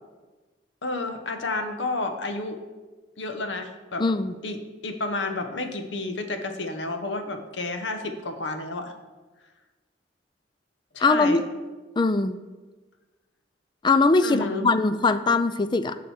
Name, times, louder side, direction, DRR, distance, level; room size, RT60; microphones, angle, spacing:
voice 1, 0.8-2.6 3.2-4.0 4.4-8.9 10.9-11.4 14.2-14.7, left 2 dB, 75° left, 6 dB, 1.0 m, -31 dB
voice 2, 4.0-4.3 11.0-11.4 12.0-12.4 13.8-16.0, left 3 dB, 25° left, 12 dB, 0.4 m, -21 dB
7.2 x 6.2 x 7.2 m, 1.3 s
head